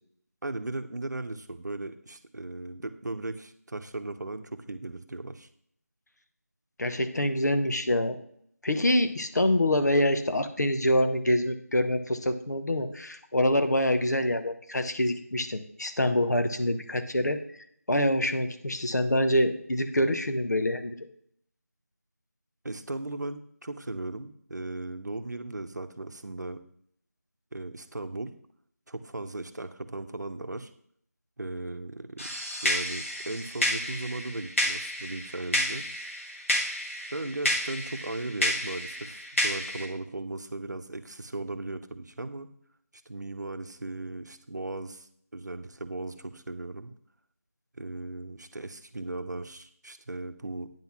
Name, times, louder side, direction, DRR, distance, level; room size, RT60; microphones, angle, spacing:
voice 1, 0.4-5.5 22.6-26.6 27.5-28.3 28.9-30.7 31.4-32.3 32.6-35.9 37.1-42.5 43.1-46.9 47.7-50.7, right 2 dB, 80° right, 10 dB, 0.8 m, -37 dB
voice 2, 6.8-8.2 8.6-17.4 17.9-20.9, left 1 dB, 75° left, 8 dB, 1.0 m, -26 dB
sound 1, 32.2-39.9, equal, 50° left, 1.6 m, -31 dB
9.2 x 4.0 x 5.8 m, 0.66 s
figure-of-eight pair, 175°, 9 cm